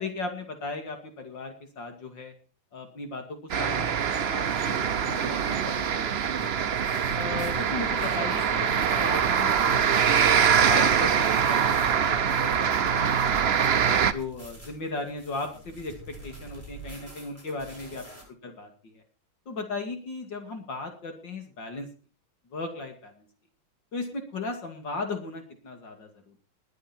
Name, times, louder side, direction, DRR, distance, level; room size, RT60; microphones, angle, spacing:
voice 1, 0.0-2.3 2.7-6.2 7.1-10.0 10.7-13.5 13.8-19.0 19.5-21.9 22.5-23.3 23.9-26.4, left 3 dB, 60° left, 5 dB, 3.1 m, -37 dB
sound 1, 3.5-14.1, right 7 dB, 65° right, 0.6 m, -24 dB
sound 2, 4.5-18.2, equal, 5° left, 7.4 m, -46 dB
21.5 x 8.4 x 4.4 m, 0.37 s
omnidirectional pair, 2.2 m